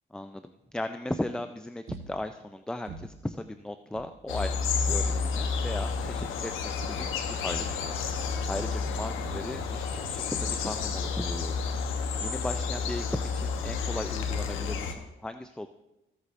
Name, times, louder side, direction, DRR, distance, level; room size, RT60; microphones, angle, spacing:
voice 1, 0.1-4.5 4.9-7.9 8.5-11.7 12.2-15.7, left 1 dB, 5° left, 9 dB, 0.4 m, -37 dB
sound 1, 1.9-2.5 2.9-3.4 3.9-4.3 4.9-5.4 6.0-6.5 6.8-8.7 9.2-10.0 10.5-11.0, right 4 dB, 50° right, 0.9 m, -47 dB
sound 2, 4.3-14.9, left 5 dB, 90° left, 1.0 m, -31 dB
15.0 x 8.2 x 2.6 m, 0.95 s
cardioid pair, 90°, 20 cm